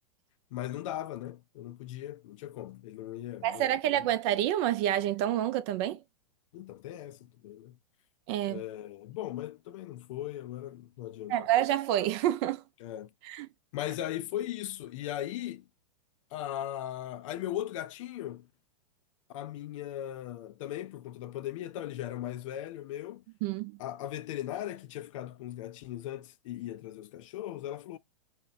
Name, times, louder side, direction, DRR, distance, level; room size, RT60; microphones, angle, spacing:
voice 1, 0.5-4.1 6.5-7.8 8.5-11.5 12.8-13.1 13.7-15.7 16.3-18.5 19.3-23.2 23.8-28.0, left 12 dB, 55° left, 0.4 m, -38 dB
voice 2, 3.4-6.0 8.3-8.6 11.3-12.6 13.2-13.5 23.4-23.8, right 12 dB, 45° right, 0.4 m, -28 dB
2.8 x 2.1 x 2.5 m
hypercardioid pair, 105°, 20 cm